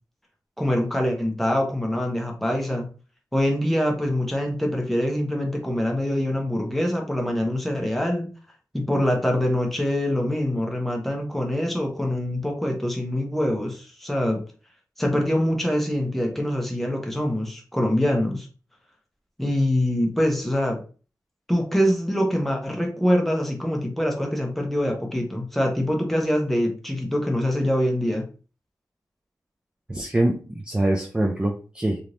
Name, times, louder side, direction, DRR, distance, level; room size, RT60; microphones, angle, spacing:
voice 1, 0.6-2.9 3.3-8.3 8.7-14.4 15.0-18.5 19.4-20.8 21.5-28.2, left 1 dB, 5° left, 1 dB, 0.8 m, -24 dB
voice 2, 29.9-32.0, right 1 dB, 15° right, 1 dB, 0.4 m, -24 dB
3.5 x 2.9 x 2.6 m, 0.37 s
wide cardioid pair, 125°, 7 cm